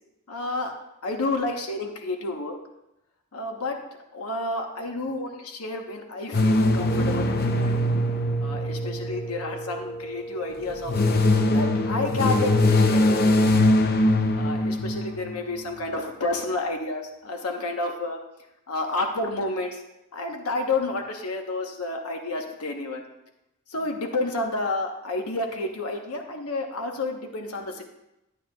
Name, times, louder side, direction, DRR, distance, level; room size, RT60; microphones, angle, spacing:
voice 1, 0.3-0.7 1.0-2.6 3.3-3.8 4.1-7.8 8.4-13.7 14.3-18.2 18.7-19.8 20.1-23.0 23.7-27.8, left 2 dB, 80° left, 3 dB, 1.1 m, -30 dB
sound 1, 6.3-9.7 10.6-15.4, left 1 dB, 45° left, 0.6 m, -22 dB
Wind instrument woodwind instrument, 6.9-13.6, right 1 dB, 20° left, 1.6 m, -38 dB
12.0 x 9.3 x 2.3 m, 0.89 s
head